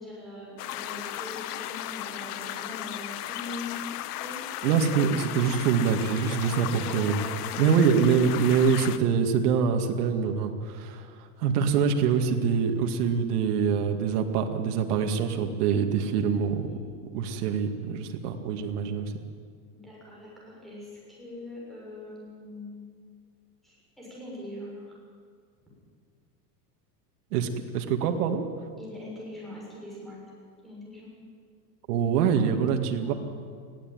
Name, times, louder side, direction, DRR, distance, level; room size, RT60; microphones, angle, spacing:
voice 1, 0.0-3.8 4.1-4.4 6.5-7.8 16.7-17.0 19.7-22.9 23.6-24.9 28.8-30.2 30.6-31.1 33.0-33.2, left 2 dB, ahead, -5 dB, 6.6 m, -42 dB
sound 1, 0.6-9.0, left 14 dB, 75° left, 1.1 m, -36 dB
voice 2, 4.6-7.2 7.6-11.1 11.4-16.7 17.1-19.1 27.3-28.4 31.9-33.1, right 6 dB, 70° right, 5 dB, 2.3 m, -25 dB
20.5 x 14.5 x 9.3 m, 2.1 s
supercardioid pair, 170°, 47 cm